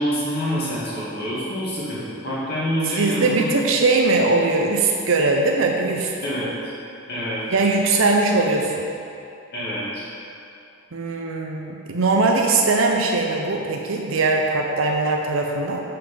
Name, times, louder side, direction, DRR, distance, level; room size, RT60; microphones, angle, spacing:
voice 1, 0.0-3.5 6.2-6.7 7.1-7.4 9.5-10.1, equal, 50° left, -8 dB, 2.0 m, -26 dB
voice 2, 3.0-6.1 7.5-8.9 10.9-15.8, right 3 dB, 70° right, 1 dB, 0.6 m, -20 dB
6.9 x 5.7 x 5.3 m, 2.6 s
head